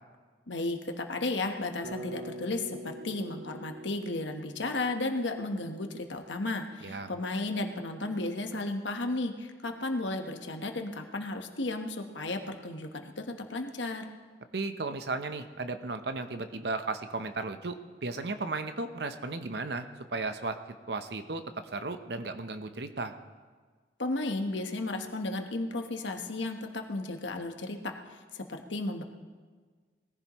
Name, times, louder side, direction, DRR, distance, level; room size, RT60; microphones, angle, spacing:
voice 1, 0.5-14.1 24.0-27.8 28.3-29.0, left 2 dB, 85° left, 5 dB, 1.3 m, -34 dB
Bass guitar, 1.8-5.9, right 1 dB, 80° right, 4.2 m, -45 dB
voice 2, 14.5-17.8 18.0-19.9 20.1-20.6 20.9-21.4 21.7-23.1, right 3 dB, 60° right, 9 dB, 0.9 m, -35 dB
20.5 x 15.0 x 3.1 m, 1.5 s
head